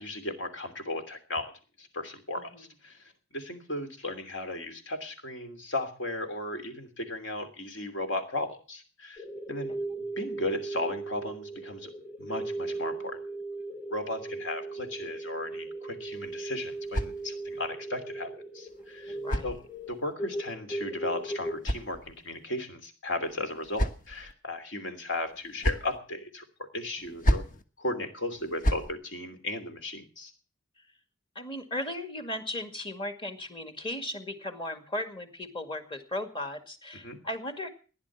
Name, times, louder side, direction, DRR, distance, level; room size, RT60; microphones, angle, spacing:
voice 1, 0.0-1.5 1.8-11.9 12.2-13.2 13.9-18.3 18.5-19.2 19.4-19.6 19.9-27.4 27.8-30.3 37.0-37.2, left 2 dB, 65° left, 7 dB, 3.0 m, -36 dB
voice 2, 2.4-2.7 9.7-9.8 19.1-19.5 31.4-37.7, left 1 dB, 25° left, 8 dB, 2.1 m, -36 dB
sound 1, 9.2-21.6, right 2 dB, 10° right, 0.9 m, -37 dB
sound 2, 16.0-17.7 18.7-20.1 21.1-22.5 23.3-24.3 25.3-26.0 27.0-27.6 28.4-28.9, equal, 40° left, 1.2 m, -32 dB
15.5 x 10.5 x 7.3 m, 0.39 s
head